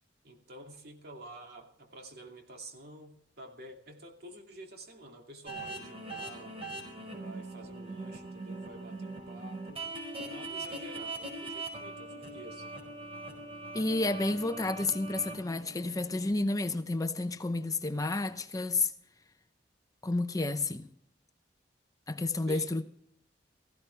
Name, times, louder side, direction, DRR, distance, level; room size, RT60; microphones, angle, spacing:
voice 1, 0.2-6.6 7.1-9.8 10.3-12.7 22.5-22.7, right 1 dB, 60° right, 2.6 m, -49 dB
sound 1, 5.5-16.3, right 2 dB, 35° right, 4.7 m, -42 dB
voice 2, 13.7-18.9 20.0-20.9 22.1-22.8, left 2 dB, 20° left, 0.7 m, -31 dB
17.5 x 15.0 x 3.4 m
head